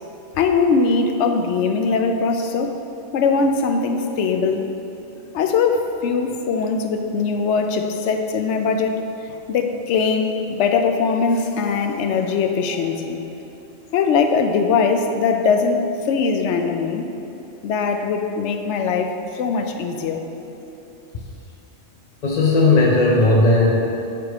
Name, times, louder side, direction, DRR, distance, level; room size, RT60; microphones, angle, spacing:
voice 1, 0.4-2.7 3.1-4.7 5.3-9.0 9.5-13.2 13.9-17.1 17.6-20.2, left 5 dB, 80° left, 5 dB, 0.9 m, -21 dB
voice 2, 22.2-23.7, left 2 dB, 50° left, -4 dB, 0.6 m, -16 dB
7.8 x 3.5 x 4.7 m, 2.9 s
omnidirectional pair, 1.2 m